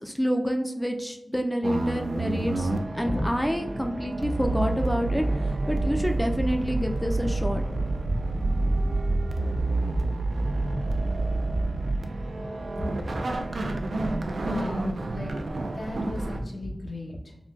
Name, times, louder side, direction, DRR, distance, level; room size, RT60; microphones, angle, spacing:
voice 1, 0.0-7.6, equal, 10° left, 3 dB, 0.3 m, -28 dB
sound 1, 1.6-16.4, right 2 dB, 80° right, 0.3 m, -28 dB
sound 2, 3.0-16.9, equal, 50° left, 1.0 m, -38 dB
voice 2, 14.4-17.4, left 1 dB, 80° left, -3 dB, 0.8 m, -37 dB
3.8 x 2.1 x 2.4 m, 0.96 s
cardioid pair, 45°, 0 cm